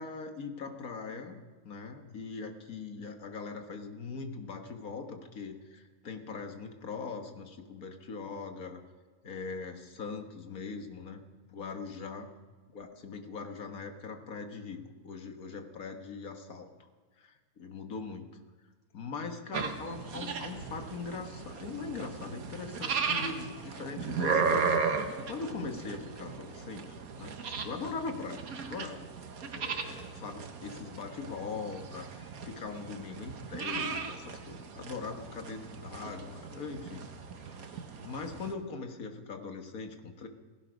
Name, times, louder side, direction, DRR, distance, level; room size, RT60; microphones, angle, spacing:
voice 1, 0.0-1.4 1.6-8.8 9.2-11.2 11.5-12.3 12.7-16.7 17.2-18.3 18.9-29.0 29.5-37.1 37.4-37.6 38.0-40.3, left 4 dB, 75° left, 5 dB, 1.9 m, -41 dB
sound 1, 19.5-38.5, right 5 dB, 75° right, 1.6 m, -36 dB
17.0 x 16.5 x 5.2 m, 1.4 s
omnidirectional pair, 1.6 m